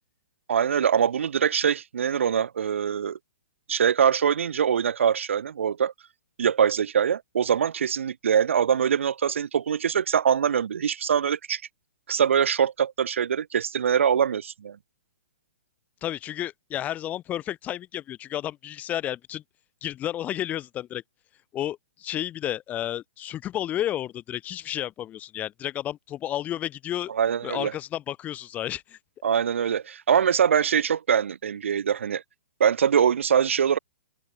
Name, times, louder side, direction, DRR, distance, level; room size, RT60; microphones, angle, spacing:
voice 1, 0.5-3.2 3.7-5.9 6.4-11.6 12.1-14.8 27.1-27.7 29.2-32.2 32.6-33.8, right 8 dB, 75° right, 0.7 m, -23 dB
voice 2, 16.0-19.4 19.8-21.0 21.5-27.1 27.4-29.0, left 12 dB, 20° left, 3.8 m, -32 dB
open air
hypercardioid pair, 135°, 7 cm